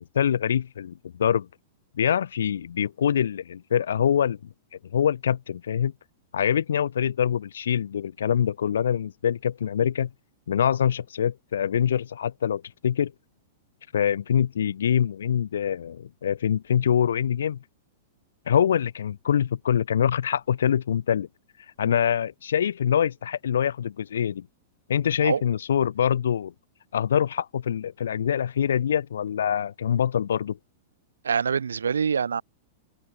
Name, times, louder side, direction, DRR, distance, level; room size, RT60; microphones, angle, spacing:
voice 1, 0.0-1.5 2.0-4.4 4.9-5.9 6.3-10.1 10.5-13.1 13.9-17.6 18.5-21.3 21.8-24.5 24.9-26.5 26.9-30.6, left 8 dB, 75° left, 1.1 m, -24 dB
voice 2, 31.2-32.4, right 6 dB, 85° right, 1.2 m, -25 dB
hypercardioid pair, 105°, 0 cm